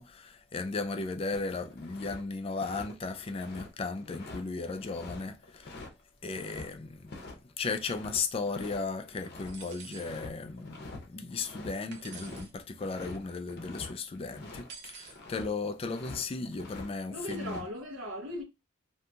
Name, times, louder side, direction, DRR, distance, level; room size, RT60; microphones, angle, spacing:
voice 1, 0.0-5.8 6.2-17.7, left 4 dB, 30° left, 0.3 m, -36 dB
sound 1, 1.3-2.2 2.5-6.7 7.1-7.3 7.6-9.5 9.9-10.3 10.6-11.0 11.3-14.7 15.0-15.5 15.8-16.9 17.2-17.7, left 2 dB, 50° left, 0.7 m, -46 dB
sound 2, 9.5-10.1 11.9-12.5 14.7-15.2, right 5 dB, 55° right, 0.6 m, -48 dB
voice 2, 17.1-18.4, equal, 90° right, 0.8 m, -38 dB
2.6 x 2.3 x 2.7 m
head